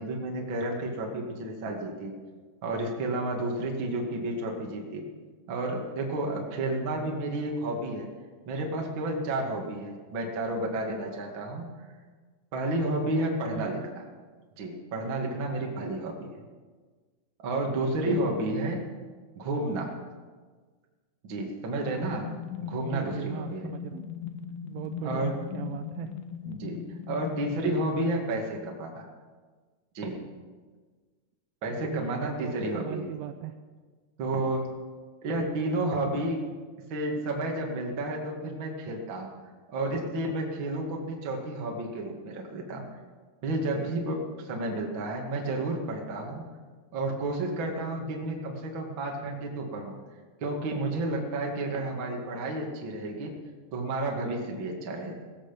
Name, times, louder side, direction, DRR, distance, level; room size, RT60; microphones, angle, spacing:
voice 1, 0.0-2.1 2.6-5.0 5.5-8.1 8.4-11.7 12.5-14.0 14.6-16.3 17.4-18.8 19.3-19.9 21.3-22.3 22.6-23.7 25.0-25.4 26.4-26.8 27.1-29.1 29.9-30.2 31.6-33.1 34.2-34.7 35.2-36.4 36.9-39.3 39.7-42.8 43.4-46.4 46.9-50.0 50.4-53.3 53.7-55.2, right 2 dB, 55° right, 0 dB, 1.3 m, -31 dB
sound 1, 22.2-27.5, left 8 dB, 80° left, 2.2 m, -39 dB
voice 2, 22.9-24.0 24.6-26.1 31.6-33.5, right 12 dB, 80° right, 8 dB, 2.9 m, -38 dB
18.5 x 14.0 x 5.3 m, 1.4 s
omnidirectional pair, 6.0 m